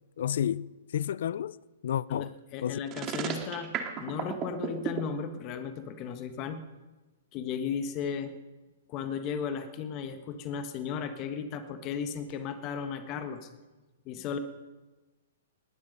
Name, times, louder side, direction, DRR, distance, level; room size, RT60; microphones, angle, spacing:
voice 1, 0.2-0.7 0.9-1.5 1.8-2.3 2.6-2.8, left 10 dB, 65° left, 0.4 m, -30 dB
voice 2, 2.1-6.6 7.3-8.3 8.9-13.5 14.0-14.4, left 6 dB, 35° left, 1.4 m, -35 dB
sound 1, 2.9-5.0, right 10 dB, 30° right, 2.3 m, -33 dB
20.5 x 11.0 x 5.4 m
hypercardioid pair, 125°, 0 cm